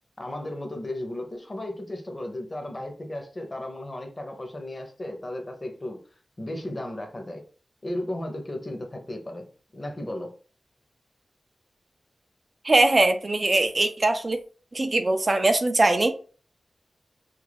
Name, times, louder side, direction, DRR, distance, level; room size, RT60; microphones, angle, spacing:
voice 1, 0.2-6.0 6.4-7.4 7.8-10.3, left 1 dB, 30° left, 0.7 m, -35 dB
voice 2, 12.6-14.4 14.7-16.1, right 2 dB, 40° right, 0.3 m, -21 dB
2.4 x 2.1 x 3.3 m
wide cardioid pair, 75°, 0 cm